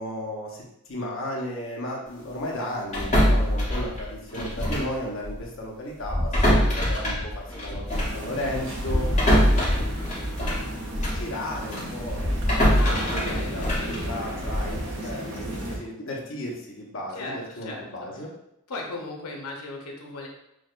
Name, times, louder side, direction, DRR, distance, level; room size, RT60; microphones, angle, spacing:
voice 1, 0.0-9.1 11.1-12.7 13.0-18.3, left 1 dB, 60° left, -2 dB, 0.8 m, -34 dB
sound 1, 2.9-5.0 5.2-5.4 6.0-11.3 11.7-14.8, equal, 30° left, 1.1 m, -24 dB
sound 2, 7.9-15.8, right 1 dB, 60° right, 0.7 m, -34 dB
voice 2, 9.3-9.7 12.8-14.1 15.0-15.7 16.9-17.9 18.1-18.2 18.7-20.3, left 2 dB, 90° left, 1 dB, 0.8 m, -38 dB
6.2 x 2.2 x 2.5 m, 0.82 s
head